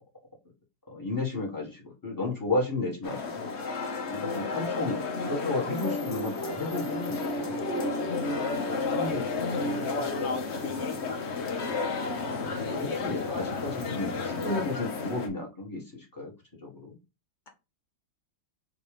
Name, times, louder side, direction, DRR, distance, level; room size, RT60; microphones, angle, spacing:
voice 1, 0.9-3.5 4.1-10.4 12.4-16.3 16.6-17.0, left 2 dB, 10° left, 1.5 m, -34 dB
sound 1, 3.0-15.3, left 3 dB, 50° left, 0.8 m, -31 dB
voice 2, 10.8-11.4 12.1-12.4, left 3 dB, 75° left, 0.4 m, -53 dB
3.7 x 3.0 x 4.8 m
omnidirectional pair, 2.0 m